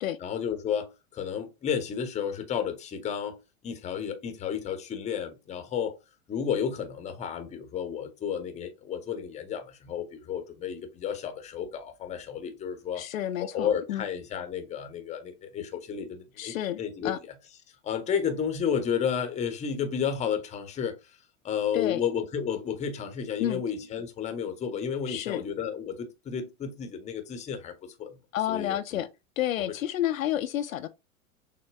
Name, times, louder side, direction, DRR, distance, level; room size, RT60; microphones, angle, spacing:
voice 1, 0.2-3.4 3.6-6.0 6.3-13.0 13.4-17.1 17.8-21.2 21.4-27.7 28.0-28.2 28.5-29.0, left 7 dB, 15° left, 0.7 m, -32 dB
voice 2, 13.0-14.0 16.4-17.2 21.7-22.0 23.4-23.6 25.1-25.4 28.3-29.1 29.4-30.9, left 12 dB, 75° left, 0.5 m, -30 dB
6.4 x 2.2 x 2.2 m
figure-of-eight pair, 100°, 41 cm